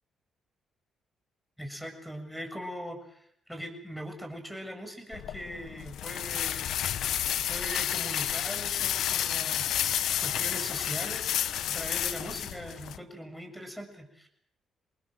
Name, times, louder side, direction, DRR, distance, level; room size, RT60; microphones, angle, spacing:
voice 1, 1.6-6.9 7.5-14.3, equal, 5° left, 6 dB, 7.1 m, -41 dB
sound 1, 5.1-13.0, left 11 dB, 75° left, 1.1 m, -31 dB
26.5 x 19.5 x 7.8 m, 0.69 s
cardioid pair, 90°, 0 cm